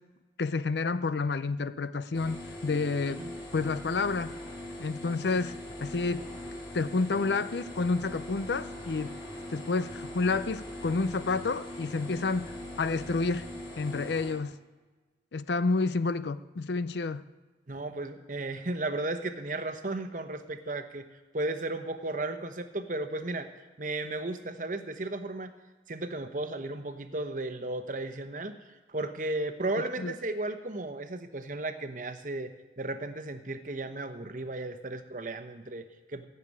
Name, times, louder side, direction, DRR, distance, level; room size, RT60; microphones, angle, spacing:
voice 1, 0.4-3.2 3.5-4.3 4.8-5.5 5.8-6.2 6.7-9.2 9.5-13.5 13.8-14.6 15.3-17.2 30.0-30.1, left 3 dB, 70° left, 14 dB, 0.6 m, -29 dB
sound 1, 2.1-14.3, left 1 dB, 25° left, 3.7 m, -41 dB
voice 2, 17.7-21.1 21.3-25.5 25.9-36.2, right 2 dB, 45° right, 8 dB, 0.9 m, -35 dB
15.0 x 6.9 x 9.6 m, 1.3 s
head